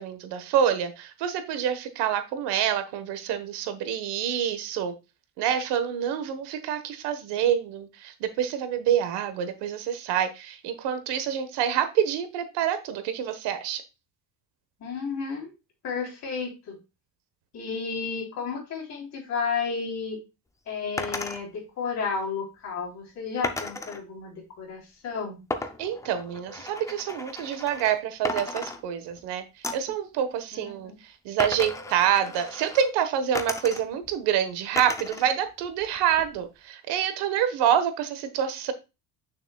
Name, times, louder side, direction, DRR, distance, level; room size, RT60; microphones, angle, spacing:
voice 1, 0.0-4.9 5.4-13.8 25.8-29.4 29.7-30.9 31.2-38.7, right 9 dB, 80° right, 10 dB, 1.3 m, -27 dB
voice 2, 14.8-15.5 15.8-16.8 17.5-20.2 20.7-25.4 30.5-31.0, left 5 dB, 40° left, 0 dB, 3.4 m, -32 dB
sound 1, 21.0-21.4 23.4-24.0 25.5-28.0 28.2-29.2 29.6-30.0 31.4-32.9 33.3-34.1 34.8-35.3 35.6-36.4, left 2 dB, 10° left, 0.4 m, -35 dB
8.8 x 6.5 x 2.3 m, 0.26 s
cardioid pair, 160°, 41 cm